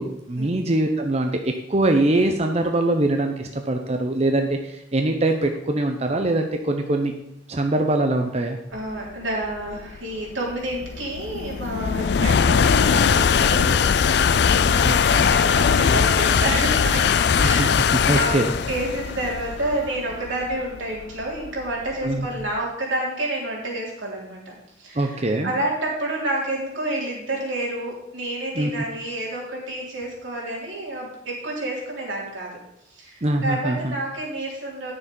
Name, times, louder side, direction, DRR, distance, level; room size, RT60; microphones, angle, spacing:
voice 1, 0.0-7.1 7.5-8.6 14.8-15.3 17.4-18.5 22.0-22.3 25.0-25.5 28.5-28.7 33.2-33.9, right 2 dB, 35° right, 4 dB, 0.6 m, -23 dB
voice 2, 8.7-17.7 18.1-18.4 18.7-32.5 32.9-34.9, right 1 dB, 85° right, -3 dB, 3.5 m, -29 dB
sound 1, 9.1-22.4, left 6 dB, 60° left, 0.4 m, -20 dB
9.7 x 6.8 x 5.3 m, 0.82 s
head